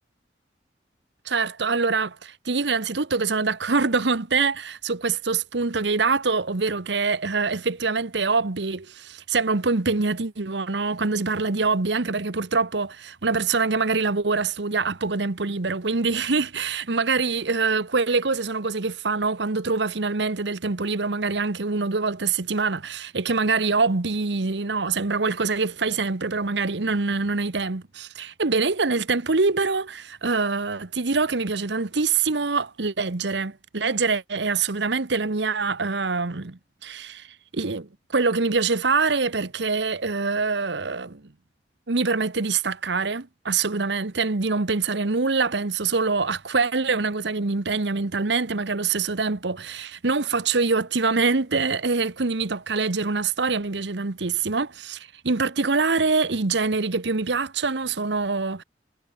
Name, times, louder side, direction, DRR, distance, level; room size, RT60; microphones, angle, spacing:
voice 1, 1.3-37.3 37.5-41.2 41.9-58.6, right 4 dB, 75° right, 1.1 m, -24 dB
head